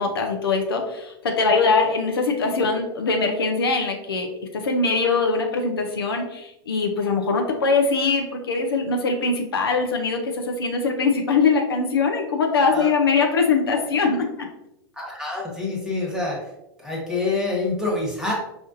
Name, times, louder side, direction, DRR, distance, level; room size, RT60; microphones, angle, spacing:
voice 1, 0.0-14.5, left 4 dB, 75° left, 3 dB, 0.6 m, -22 dB
voice 2, 14.9-16.5 16.8-18.3, left 3 dB, 5° right, -3 dB, 1.2 m, -26 dB
5.0 x 2.4 x 2.5 m, 0.86 s
figure-of-eight pair, 95°, 13 cm